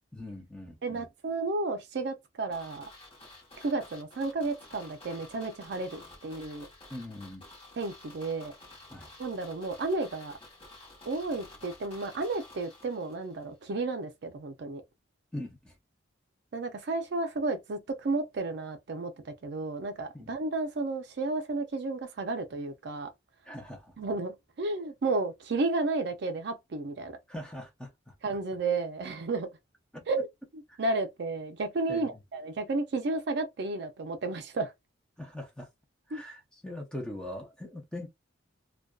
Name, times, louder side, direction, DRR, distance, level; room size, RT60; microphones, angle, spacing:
voice 1, 0.1-1.1 6.9-7.5 8.9-9.1 15.3-15.8 20.1-20.3 23.4-23.9 27.3-28.1 29.9-30.0 30.7-30.8 31.9-32.2 35.2-35.7 36.1-38.1, left 1 dB, 5° left, 0.6 m, -41 dB
voice 2, 0.8-2.8 3.6-6.7 7.8-8.5 9.2-10.3 11.1-14.8 16.5-23.1 24.0-27.1 28.2-29.5 30.1-30.3 30.8-34.7 36.1-36.2, right 3 dB, 60° right, 0.4 m, -32 dB
sound 1, 2.5-13.5 13.7-13.8, left 2 dB, 30° left, 0.9 m, -51 dB
2.5 x 2.2 x 2.2 m
head